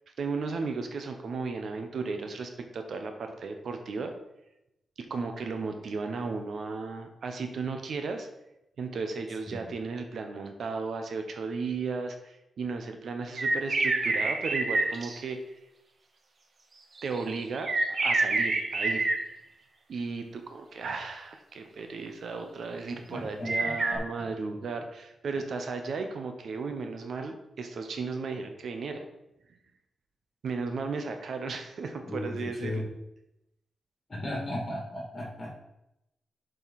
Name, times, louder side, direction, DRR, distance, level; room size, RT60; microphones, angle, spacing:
voice 1, 0.2-4.1 5.0-8.3 8.8-15.4 17.0-19.1 19.9-29.1 30.4-32.8, right 4 dB, 70° right, 6 dB, 0.9 m, -35 dB
sound 1, 13.4-15.2 17.0-19.2 23.4-24.0, right 3 dB, 50° right, 1.1 m, -27 dB
voice 2, 23.1-24.0 32.0-32.8 34.1-35.6, left 1 dB, 35° left, -2 dB, 2.6 m, -36 dB
7.4 x 5.3 x 4.1 m, 0.88 s
cardioid pair, 95°, 0 cm